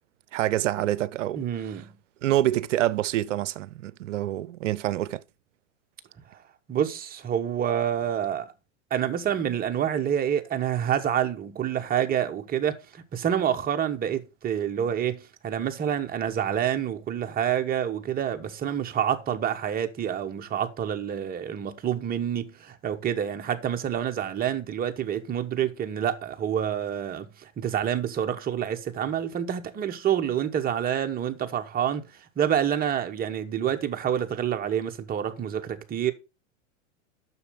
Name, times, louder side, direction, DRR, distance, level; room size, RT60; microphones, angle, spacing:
voice 1, 0.3-1.4 2.2-5.2, right 13 dB, 75° right, 0.6 m, -26 dB
voice 2, 1.3-1.9 6.3-6.4 6.7-8.5 8.9-32.0 32.4-36.1, right 9 dB, 25° right, 1.1 m, -27 dB
7.0 x 6.4 x 5.1 m
hypercardioid pair, 105°, 37 cm